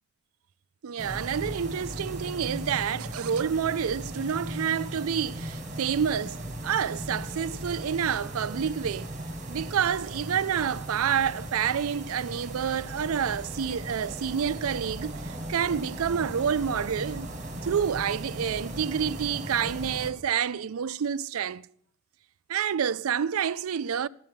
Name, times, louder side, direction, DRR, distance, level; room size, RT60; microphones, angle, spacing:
voice 1, 0.8-9.1 9.5-17.3 17.6-21.7 22.5-24.1, right 7 dB, 90° right, 0.4 m, -28 dB
sound 1, 1.0-20.1, right 1 dB, 35° right, 1.9 m, -37 dB
13.5 x 7.4 x 9.2 m
head